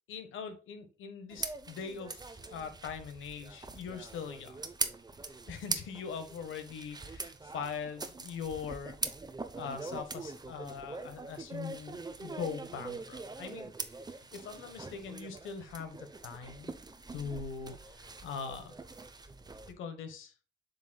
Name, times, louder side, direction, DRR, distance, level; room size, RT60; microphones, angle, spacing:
voice 1, 0.1-4.7 5.5-9.0 9.5-16.8 17.1-18.7 19.7-20.3, left 6 dB, 80° left, 8 dB, 1.3 m, -42 dB
sound 1, 1.3-19.7, right 3 dB, 20° right, 0.8 m, -42 dB
7.7 x 5.4 x 2.3 m, 0.34 s
cardioid pair, 90°, 20 cm